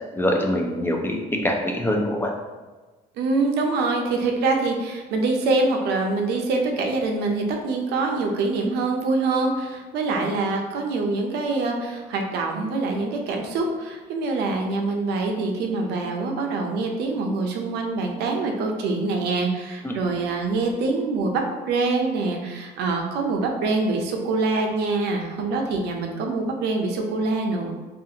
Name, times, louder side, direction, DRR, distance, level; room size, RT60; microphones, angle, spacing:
voice 1, 0.1-2.3 19.8-20.0, left 1 dB, 15° left, 1 dB, 0.3 m, -24 dB
voice 2, 3.2-27.7, right 3 dB, 80° right, 2 dB, 0.5 m, -25 dB
2.4 x 2.4 x 2.7 m, 1.2 s
cardioid pair, 110°, 17 cm